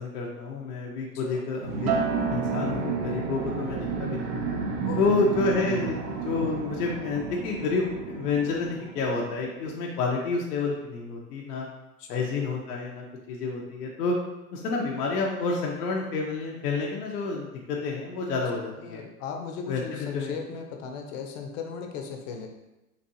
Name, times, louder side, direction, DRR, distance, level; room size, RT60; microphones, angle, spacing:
voice 1, 0.0-2.0 2.3-4.5 5.0-11.7 12.1-14.2 14.5-19.0 19.7-20.4, left 4 dB, 85° left, -2 dB, 0.8 m, -29 dB
sound 1, 1.6-9.8, right 5 dB, 30° right, 0.5 m, -32 dB
Acoustic guitar, 1.9-6.3 6.7-7.1, right 4 dB, 75° right, 0.8 m, -34 dB
voice 2, 4.7-5.1 12.0-12.2 18.8-22.5, left 6 dB, 55° left, 3 dB, 0.8 m, -37 dB
4.3 x 2.6 x 2.6 m, 0.98 s
hypercardioid pair, 115°, 46 cm